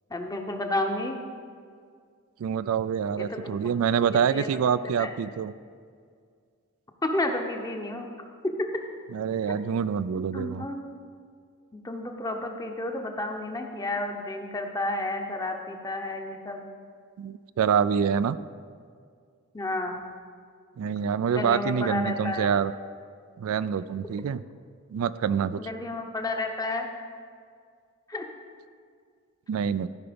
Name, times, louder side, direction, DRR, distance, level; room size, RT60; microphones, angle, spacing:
voice 1, 0.1-1.2 3.2-3.7 4.0-4.6 5.0-5.1 7.0-8.1 8.6-8.7 10.1-10.8 11.7-16.7 19.5-20.0 21.3-22.5 25.6-26.9 28.1-28.3, left 2 dB, 15° left, 4 dB, 0.8 m, -31 dB
voice 2, 2.4-5.5 9.1-10.6 17.2-18.4 20.8-22.7 23.4-24.4 24.9-25.6 29.5-29.9, right 7 dB, 70° right, 15 dB, 0.3 m, -26 dB
14.0 x 5.7 x 5.1 m, 2.1 s
head